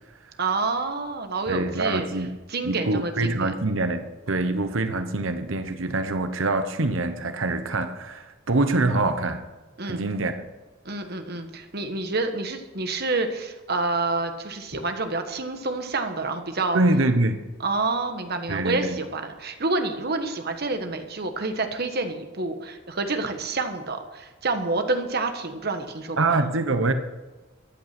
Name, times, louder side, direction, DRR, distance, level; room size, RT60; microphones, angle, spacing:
voice 1, 0.4-2.1 2.5-3.5 9.8-10.0 10.8-16.8 17.6-26.4, right 3 dB, 50° right, 6 dB, 1.5 m, -28 dB
voice 2, 1.5-2.3 2.6-9.4 9.8-10.5 16.7-17.4 18.5-19.0 26.2-26.9, right 2 dB, 75° right, 9 dB, 1.0 m, -25 dB
14.5 x 9.7 x 6.1 m, 1.2 s
head